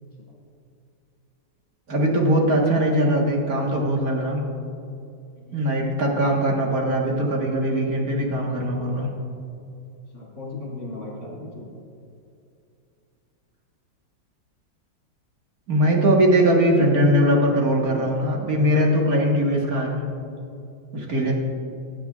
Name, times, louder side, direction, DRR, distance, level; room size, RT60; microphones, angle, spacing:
voice 1, 1.9-4.4 5.5-9.1 15.7-20.0 20.9-21.3, equal, 50° right, -1 dB, 1.8 m, -21 dB
voice 2, 10.1-11.7 21.2-21.3, left 2 dB, 50° left, -5 dB, 2.5 m, -37 dB
16.5 x 8.7 x 2.4 m, 2.6 s
omnidirectional pair, 2.0 m